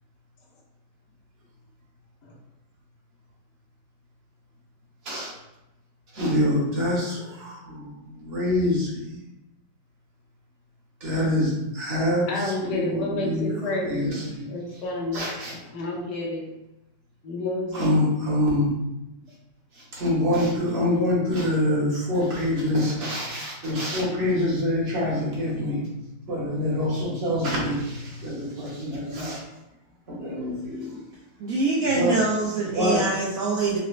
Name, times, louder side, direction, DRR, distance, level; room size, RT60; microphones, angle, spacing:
voice 1, 6.1-7.9 8.2-9.0 11.0-13.4 13.8-14.4 15.1-15.5 17.7-18.7 19.9-25.8 26.3-29.4 30.1-31.0 31.9-32.2 32.7-33.0, left 1 dB, 45° right, -5 dB, 0.9 m, -25 dB
voice 2, 12.3-15.3 15.7-16.5 17.2-18.1, left 2 dB, 80° left, -2 dB, 1.3 m, -30 dB
voice 3, 31.4-33.8, right 3 dB, 70° right, -5 dB, 0.9 m, -24 dB
4.1 x 2.0 x 2.4 m, 0.93 s
omnidirectional pair, 1.9 m